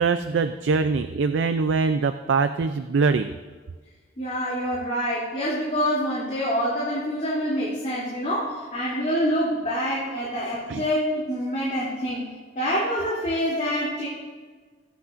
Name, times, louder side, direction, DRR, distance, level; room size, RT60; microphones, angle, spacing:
voice 1, 0.0-3.3 10.7-10.8, right 4 dB, 80° right, 9 dB, 0.4 m, -23 dB
voice 2, 4.2-12.2 12.5-14.1, equal, 40° left, -9 dB, 2.8 m, -26 dB
19.5 x 8.3 x 2.5 m, 1.4 s
head